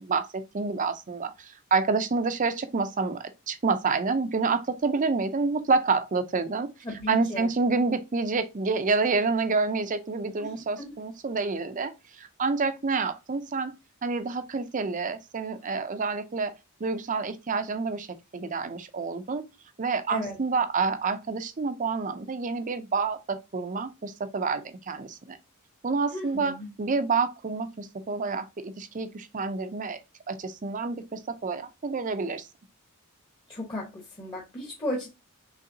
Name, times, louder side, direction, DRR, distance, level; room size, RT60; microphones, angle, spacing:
voice 1, 0.0-6.7 7.1-13.7 14.0-18.1 18.3-19.4 19.8-25.4 25.8-30.0 30.3-32.5, right 4 dB, 35° right, 0.5 m, -28 dB
voice 2, 6.8-7.5 10.4-10.5 10.8-10.9 20.1-20.4 26.1-26.7 33.5-35.1, left 1 dB, 20° left, 0.9 m, -34 dB
5.6 x 3.3 x 2.6 m
head